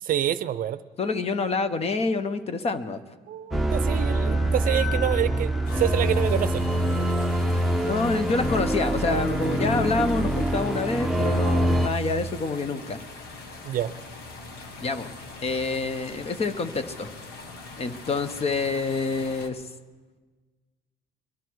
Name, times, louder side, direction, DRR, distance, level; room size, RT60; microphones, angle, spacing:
voice 1, 0.0-0.8 3.3-6.7 13.6-13.9, right 11 dB, 55° right, 14 dB, 0.6 m, -27 dB
voice 2, 1.0-3.0 7.7-13.0 14.8-15.1 15.4-17.1 17.8-19.6, left 4 dB, 35° left, 10 dB, 0.9 m, -27 dB
sound 1, 3.5-11.9, right 1 dB, ahead, 0.8 m, -24 dB
sound 2, 5.6-19.5, left 3 dB, 70° left, 1.6 m, -42 dB
23.0 x 11.5 x 4.7 m, 1.4 s
cardioid pair, 110°, 17 cm